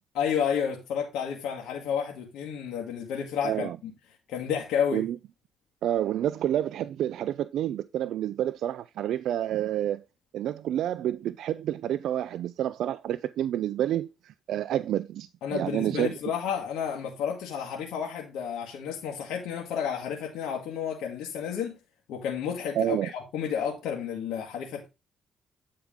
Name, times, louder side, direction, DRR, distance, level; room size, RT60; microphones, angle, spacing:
voice 1, 0.1-3.9 4.3-5.0 15.4-21.8 22.1-24.9, left 8 dB, 85° left, 1.6 m, -31 dB
voice 2, 3.4-3.8 4.9-5.2 5.8-10.0 10.3-16.1 22.8-23.1, right 11 dB, 80° right, 0.3 m, -29 dB
8.9 x 4.7 x 3.5 m
cardioid pair, 90°, 0 cm